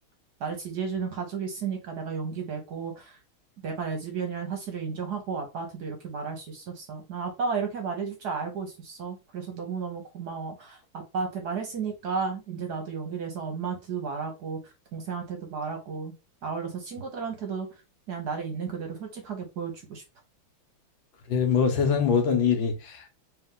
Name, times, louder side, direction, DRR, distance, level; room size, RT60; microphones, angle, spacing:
voice 1, 0.4-3.2 3.6-16.1 16.4-17.7 18.1-20.0, right 5 dB, 60° right, 1.2 m, -33 dB
voice 2, 21.3-23.1, left 6 dB, 70° left, 1.5 m, -23 dB
3.4 x 3.1 x 3.6 m
omnidirectional pair, 2.3 m